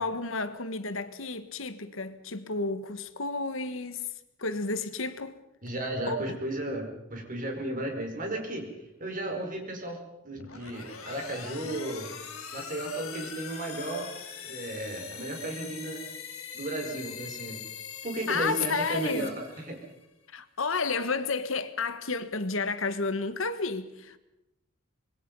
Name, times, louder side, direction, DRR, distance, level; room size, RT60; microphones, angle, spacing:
voice 1, 0.0-4.1 4.4-5.4 6.1-6.4 18.3-19.3 20.3-24.2, left 4 dB, 65° left, 1.4 m, -31 dB
voice 2, 5.6-12.1 12.5-14.1 14.5-16.0 16.5-17.6 18.0-19.8, right 1 dB, 40° right, 5.1 m, -34 dB
sound 1, 10.3-20.1, left 7 dB, 85° left, 4.4 m, -42 dB
26.0 x 21.5 x 5.5 m
head